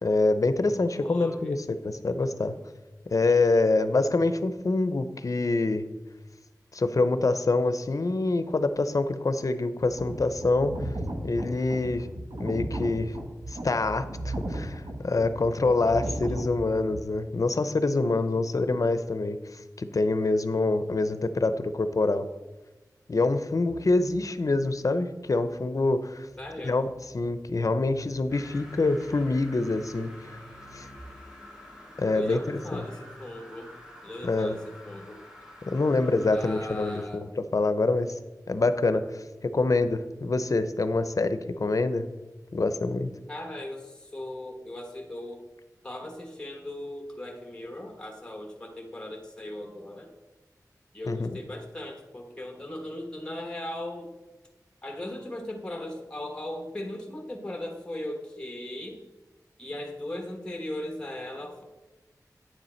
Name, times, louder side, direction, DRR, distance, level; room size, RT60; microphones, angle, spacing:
voice 1, 0.0-2.6 3.1-5.9 6.7-10.7 11.2-12.1 12.4-13.2 13.5-22.2 23.1-26.3 26.6-26.9 27.1-30.4 30.7-30.9 32.0-32.9 34.2-34.6 35.7-37.3 37.5-38.1 38.5-42.1 42.5-43.1 51.1-51.4, left 3 dB, 55° left, 11 dB, 0.6 m, -26 dB
voice 2, 1.0-1.6 15.8-16.2 26.4-26.8 32.1-33.7 34.0-35.2 36.3-37.3 43.3-45.4 45.8-50.1 50.9-54.1 54.8-59.0 59.6-61.6, left 1 dB, 15° left, 1 dB, 1.2 m, -38 dB
sound 1, 9.8-17.0, right 1 dB, 80° right, 1.1 m, -35 dB
sound 2, 23.7-31.0, right 1 dB, 35° right, 0.9 m, -53 dB
sound 3, 28.3-37.0, left 1 dB, 10° right, 2.0 m, -48 dB
9.3 x 6.8 x 4.4 m, 1.1 s
wide cardioid pair, 75°, 7 cm